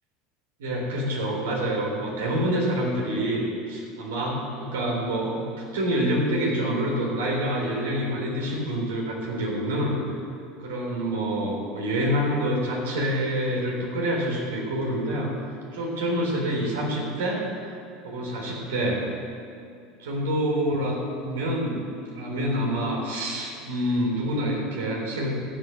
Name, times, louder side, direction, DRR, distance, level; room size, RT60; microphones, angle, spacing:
voice 1, 0.6-10.1 10.6-15.3 15.7-17.6 18.0-19.0 20.0-21.0 21.2-21.8 22.1-25.3, equal, 75° right, -2 dB, 3.7 m, -27 dB
14.0 x 8.1 x 7.9 m, 2.4 s
hypercardioid pair, 80°, 0 cm